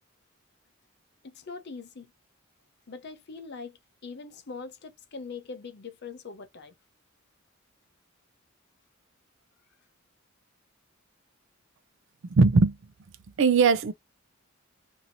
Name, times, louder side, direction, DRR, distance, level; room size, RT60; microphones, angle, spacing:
voice 1, 1.2-2.1 2.9-6.7, left 4 dB, 55° left, 0.7 m, -42 dB
voice 2, 12.3-12.8 13.4-13.9, right 4 dB, 60° right, 0.4 m, -19 dB
2.8 x 2.7 x 2.6 m
head